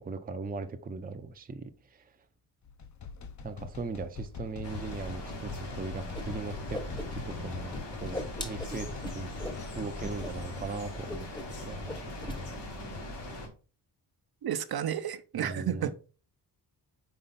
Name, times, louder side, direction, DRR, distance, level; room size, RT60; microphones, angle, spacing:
voice 1, 0.0-2.1 3.4-9.3 9.8-11.3 11.5-12.0 12.3-12.5 15.3-15.9, right 4 dB, 20° right, 0.5 m, -39 dB
sound 1, 2.6-10.8, left 5 dB, 45° left, 0.7 m, -44 dB
sound 2, 4.6-13.5, left 1 dB, 75° left, 2.4 m, -40 dB
Whoosh swoosh swish, 6.1-6.2 6.5-7.4 7.7-9.6 10.0-10.3 10.6-10.7 11.1-11.6 11.8-12.4, left 1 dB, 10° left, 0.9 m, -38 dB
voice 2, 14.4-15.9, right 10 dB, 60° right, 0.7 m, -32 dB
5.5 x 4.3 x 4.0 m
wide cardioid pair, 115°, 42 cm